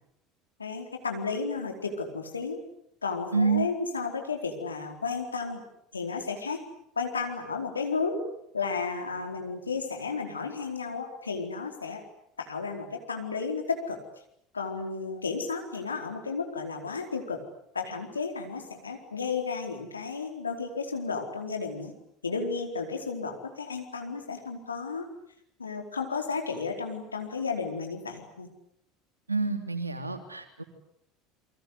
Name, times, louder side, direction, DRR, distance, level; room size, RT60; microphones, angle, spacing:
voice 1, 0.6-2.6 3.0-5.7 5.9-6.6 7.0-8.2 8.5-12.0 12.4-14.0 14.5-17.4 17.7-21.9 22.2-25.1 25.6-28.5, left 4 dB, 85° left, 3 dB, 4.4 m, -33 dB
voice 2, 3.3-3.7 29.3-30.6, right 4 dB, 90° right, 7 dB, 3.2 m, -28 dB
29.5 x 24.0 x 8.3 m, 0.75 s
figure-of-eight pair, 70°, 0 cm